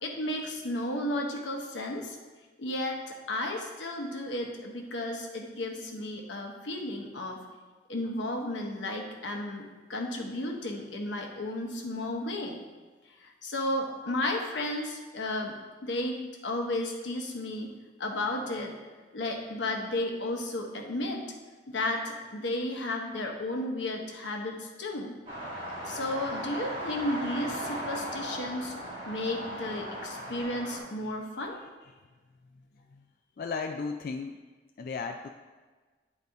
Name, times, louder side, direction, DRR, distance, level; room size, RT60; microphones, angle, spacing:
voice 1, 0.0-2.2 2.6-7.4 7.9-12.6 13.2-15.6 15.8-17.7 18.0-18.7 19.1-21.3 21.7-25.2 25.8-28.7 29.1-31.6, left 1 dB, 90° left, 2 dB, 1.0 m, -33 dB
sound 1, 25.3-30.8, equal, 30° right, 1.6 m, -37 dB
voice 2, 33.4-34.4 34.8-35.3, left 4 dB, 55° left, 3 dB, 0.3 m, -35 dB
9.1 x 4.1 x 3.5 m, 1.3 s
head